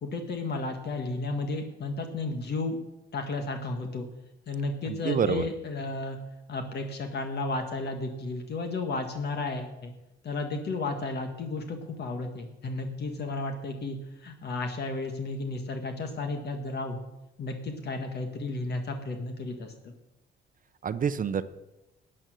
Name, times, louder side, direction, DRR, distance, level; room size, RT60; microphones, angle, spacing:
voice 1, 0.0-2.8 3.1-4.1 4.5-6.2 6.5-9.9 10.2-17.0 17.4-19.9, left 3 dB, 55° left, 5 dB, 1.4 m, -33 dB
voice 2, 4.9-5.5 20.8-21.4, right 7 dB, 45° right, 13 dB, 0.7 m, -27 dB
12.5 x 8.9 x 6.2 m, 0.99 s
cardioid pair, 90°, 20 cm